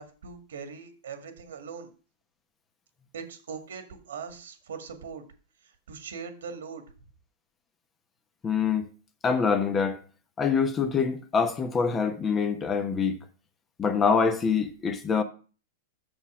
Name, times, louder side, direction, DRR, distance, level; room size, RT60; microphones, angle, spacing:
voice 1, 0.0-1.9 3.1-5.2 5.6-6.8, right 6 dB, 80° right, 1.7 m, -41 dB
voice 2, 8.4-8.9 9.2-10.0 10.4-13.2 13.8-15.2, left 5 dB, 20° left, 1.0 m, -25 dB
6.9 x 5.4 x 6.1 m
hypercardioid pair, 125°, 0 cm